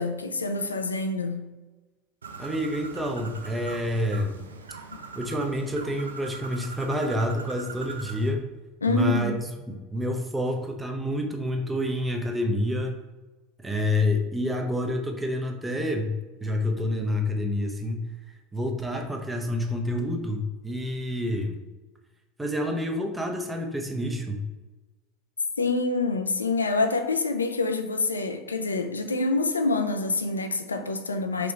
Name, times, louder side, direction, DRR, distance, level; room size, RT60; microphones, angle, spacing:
voice 1, 0.0-1.4 8.8-9.3 25.6-31.5, left 3 dB, 90° left, 7 dB, 0.4 m, -26 dB
Bird, 2.2-8.3, right 4 dB, 85° right, 0.4 m, -41 dB
voice 2, 2.4-4.4 5.1-8.5 8.9-9.3 9.7-13.0 13.6-16.1 16.4-18.1 18.5-21.6 22.4-24.4, left 1 dB, 10° right, 3 dB, 0.7 m, -28 dB
4.9 x 3.1 x 3.3 m, 1.2 s
hypercardioid pair, 80°, 0 cm